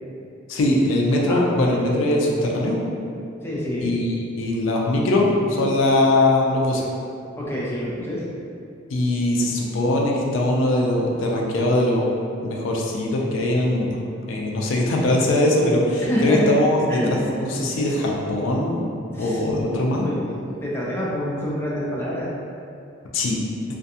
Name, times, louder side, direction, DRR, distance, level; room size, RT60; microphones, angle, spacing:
voice 1, 0.5-2.8 3.8-6.9 8.9-12.1 12.4-14.0 14.3-18.8 19.2-20.1 23.1-23.4, left 1 dB, 80° left, -1 dB, 0.4 m, -21 dB
voice 2, 3.4-3.9 7.4-8.2 16.0-16.6 16.9-17.2 19.1-19.4 20.0-20.2 20.6-22.3, equal, 15° left, -6 dB, 0.4 m, -26 dB
2.4 x 2.3 x 2.7 m, 2.6 s
head